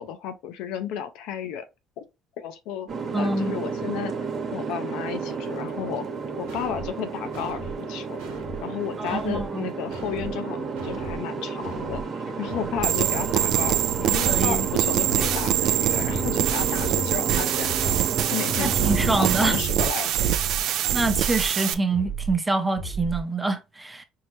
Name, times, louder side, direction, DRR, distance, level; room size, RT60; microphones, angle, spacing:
voice 1, 0.0-1.7 2.0-2.1 2.4-2.9 3.2-4.1 4.5-6.1 6.4-8.2 8.6-12.0 12.4-17.9 18.3-20.4, left 9 dB, 75° left, 0.5 m, -33 dB
Boat Water vehicle, 2.9-19.6, right 5 dB, 50° right, 1.0 m, -32 dB
voice 2, 3.1-3.6 9.0-9.7 14.3-14.7 18.6-19.6 20.9-24.0, right 3 dB, 15° right, 0.6 m, -26 dB
sound 1, 6.5-6.9 7.3-7.8 8.2-8.6 9.0-9.5 9.9-10.3 10.8-11.2 11.6-12.0 12.5-12.9 13.3-13.8 14.2-14.6 15.0-15.5 15.9-16.3 16.8-17.2 17.6-18.0 18.5-18.9 19.3-19.8 20.2-20.6 21.0-21.5 21.9-22.4 22.8-23.2, right 2 dB, 90° right, 1.0 m, -35 dB
sound 2, 12.8-21.7, right 11 dB, 70° right, 0.3 m, -24 dB
4.6 x 2.0 x 3.0 m
supercardioid pair, 75°, 0 cm